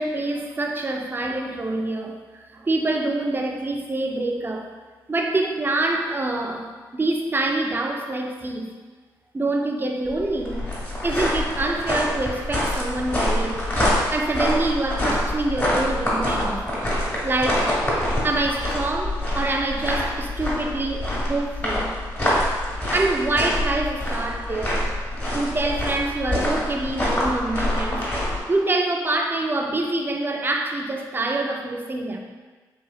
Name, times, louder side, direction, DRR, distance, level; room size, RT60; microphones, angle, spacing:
voice 1, 0.0-2.1 2.5-4.7 5.1-6.7 6.9-8.7 9.3-10.7 11.0-13.6 14.1-16.6 17.2-17.7 18.2-22.0 22.9-24.9 25.3-28.1 28.5-32.2, right 2 dB, 25° right, 3 dB, 0.4 m, -25 dB
sound 1, 10.1-28.4, left 1 dB, 20° left, 1.5 m, -25 dB
3.3 x 2.8 x 2.3 m, 1.4 s
hypercardioid pair, 40°, 9 cm